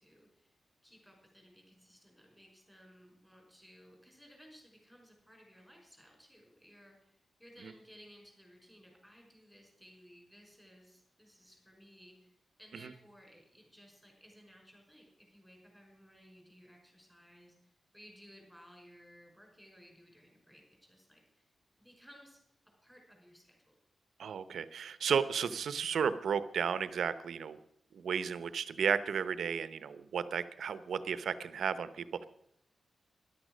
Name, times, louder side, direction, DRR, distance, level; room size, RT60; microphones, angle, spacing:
voice 1, 0.0-21.5 21.8-22.4 22.8-23.8 31.3-31.6, equal, 5° left, 0 dB, 5.4 m, -59 dB
voice 2, 24.2-27.6 27.9-32.2, right 7 dB, 85° right, 14 dB, 0.7 m, -33 dB
13.0 x 11.0 x 6.2 m, 0.76 s
wide cardioid pair, 115°, 0 cm